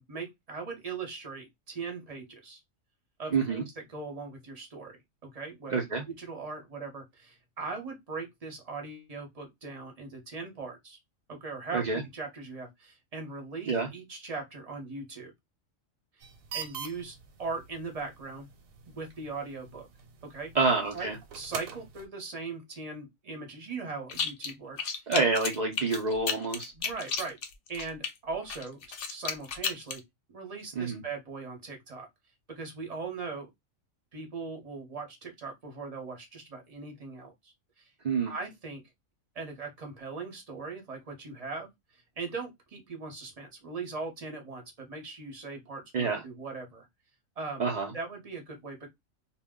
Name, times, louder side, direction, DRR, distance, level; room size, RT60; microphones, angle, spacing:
voice 1, 0.1-2.6 3.2-5.0 5.3-11.0 11.3-15.3 16.5-18.5 18.9-19.9 20.2-20.5 20.9-25.1 26.7-27.4 27.7-28.8 29.1-30.0 30.3-32.1 32.5-33.5 34.1-37.9 38.3-38.8 39.3-46.9 47.4-47.7 47.9-48.9, right 4 dB, 35° right, 0.7 m, -40 dB
voice 2, 3.3-3.6 5.7-6.0 11.7-12.0 13.7-13.9 20.5-21.2 25.1-26.7 30.8-31.0 38.0-38.3 45.9-46.2 47.6-47.9, right 4 dB, 65° right, 0.4 m, -27 dB
sound 1, 16.2-22.1, right 7 dB, 90° right, 1.1 m, -45 dB
sound 2, 24.1-24.5 24.8-28.1 28.5-30.0, left 5 dB, 70° left, 0.8 m, -33 dB
2.2 x 2.0 x 3.5 m
omnidirectional pair, 1.4 m